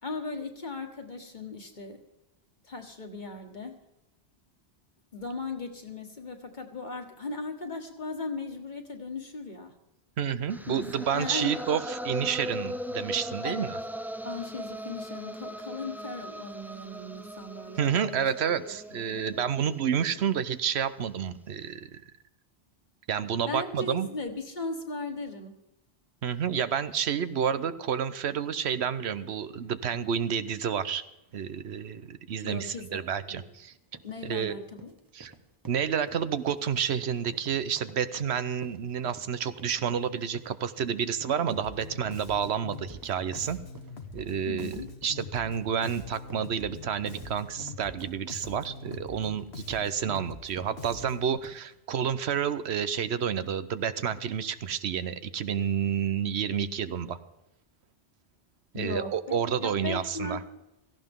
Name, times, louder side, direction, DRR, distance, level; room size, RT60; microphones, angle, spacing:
voice 1, 0.0-2.0 2.6-3.8 5.1-9.7 10.7-11.6 13.4-13.7 14.2-18.3 18.9-19.2 23.5-25.6 32.4-33.5 34.0-34.9 44.5-44.9 58.7-60.5, left 3 dB, 45° left, 4 dB, 1.8 m, -38 dB
voice 2, 10.2-13.8 17.8-22.0 23.1-24.1 26.2-31.0 31.3-33.7 34.2-34.6 35.1-35.3 35.7-43.6 44.1-57.2 58.7-60.4, right 8 dB, 85° right, 13 dB, 1.1 m, -30 dB
sound 1, 10.5-20.6, equal, 5° right, 0.4 m, -39 dB
sound 2, 33.7-51.8, right 2 dB, 20° right, 0.9 m, -52 dB
Bass guitar, 41.5-51.4, left 4 dB, 75° left, 1.8 m, -43 dB
17.0 x 15.0 x 3.7 m, 0.93 s
omnidirectional pair, 1.1 m